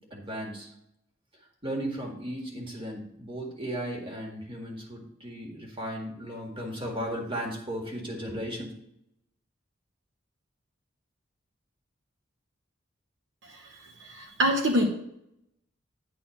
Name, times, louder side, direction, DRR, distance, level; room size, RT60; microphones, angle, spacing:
voice 1, 0.1-0.7 1.6-8.7, equal, 25° right, 0 dB, 1.9 m, -35 dB
voice 2, 14.1-14.8, equal, 65° right, 2 dB, 1.0 m, -24 dB
10.0 x 4.1 x 5.8 m, 0.78 s
head